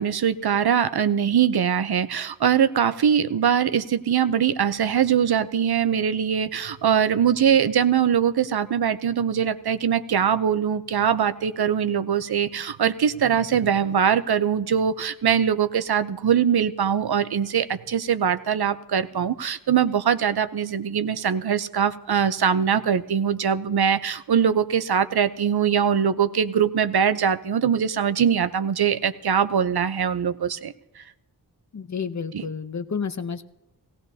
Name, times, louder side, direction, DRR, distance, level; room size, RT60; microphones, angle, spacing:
voice 1, 0.0-30.7 32.3-32.4, right 8 dB, 65° right, 13 dB, 0.7 m, -22 dB
voice 2, 31.7-33.4, left 6 dB, 40° left, 11 dB, 0.7 m, -30 dB
17.5 x 16.5 x 2.8 m, 0.92 s
wide cardioid pair, 65°, 42 cm